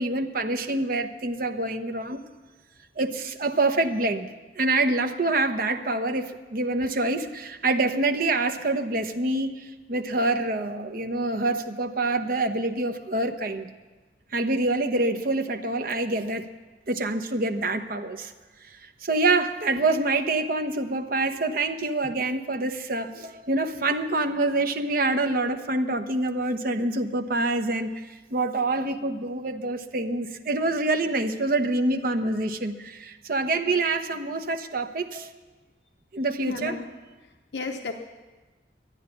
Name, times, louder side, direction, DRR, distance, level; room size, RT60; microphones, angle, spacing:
voice 1, 0.0-2.2 3.0-4.3 4.6-13.7 14.3-16.5 16.9-18.3 18.7-28.0 28.3-35.3 36.1-36.8, right 2 dB, 50° right, 7 dB, 1.0 m, -26 dB
voice 2, 36.5-36.9 37.5-37.9, left 3 dB, 70° left, 4 dB, 0.9 m, -32 dB
12.5 x 10.0 x 9.9 m, 1.3 s
head